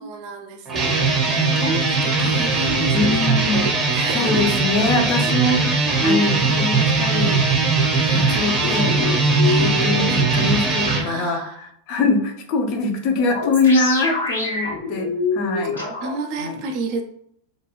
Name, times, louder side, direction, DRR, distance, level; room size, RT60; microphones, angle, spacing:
voice 1, 0.0-4.6 5.2-5.5 5.9-6.4 7.9-8.5 9.4-9.8 11.0-11.7 15.6-15.7 16.0-17.1, right 2 dB, 50° right, 5 dB, 0.4 m, -30 dB
sound 1, 0.7-11.0, right 3 dB, 20° right, 0.7 m, -20 dB
voice 2, 2.9-3.6 4.1-7.4 8.1-9.0 9.6-11.4 11.9-15.8 16.4-16.5, left 3 dB, 45° left, 3 dB, 0.6 m, -22 dB
sound 2, 8.6-10.0 10.8-10.9 13.2-16.1, left 3 dB, 85° left, 1.2 m, -26 dB
2.5 x 2.2 x 3.0 m, 0.69 s
figure-of-eight pair, 90°, 0 cm